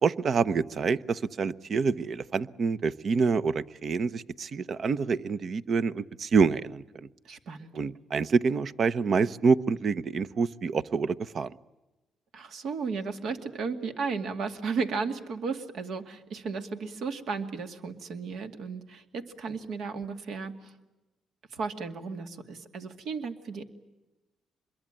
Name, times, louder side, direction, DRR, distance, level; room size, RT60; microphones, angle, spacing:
voice 1, 0.0-6.8 7.7-11.5, right 5 dB, 50° right, 16 dB, 0.8 m, -27 dB
voice 2, 7.2-7.7 12.3-20.7 21.5-23.6, right 5 dB, 70° right, 7 dB, 2.4 m, -34 dB
26.0 x 22.5 x 9.0 m, 1.1 s
cardioid pair, 90°, 0 cm